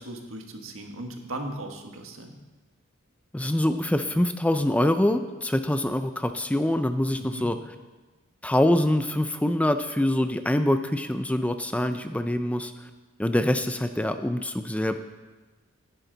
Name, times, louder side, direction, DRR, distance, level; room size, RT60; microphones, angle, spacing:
voice 1, 0.0-2.3 7.2-7.5, right 1 dB, 75° right, 3 dB, 1.6 m, -37 dB
voice 2, 3.3-7.6 8.4-12.7 13.2-15.0, left 1 dB, 5° left, 9 dB, 0.4 m, -24 dB
17.0 x 10.0 x 4.0 m, 1.2 s
head